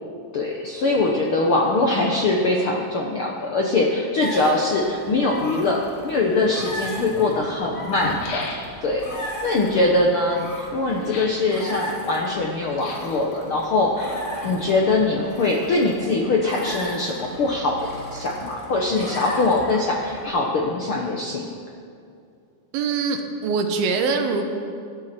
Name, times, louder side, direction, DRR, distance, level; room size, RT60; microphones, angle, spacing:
voice 1, 0.3-8.5 8.8-21.5, left 2 dB, 85° left, -1 dB, 1.1 m, -22 dB
sound 1, 4.2-20.3, equal, 25° left, 2.2 m, -36 dB
sound 2, 7.8-9.0 11.0-11.5 12.7-13.2 14.0-14.8 15.1-15.2, left 3 dB, 60° left, 3.1 m, -36 dB
voice 2, 22.7-24.5, right 4 dB, 80° right, 5 dB, 3.0 m, -23 dB
25.5 x 11.5 x 4.4 m, 2.4 s
omnidirectional pair, 4.2 m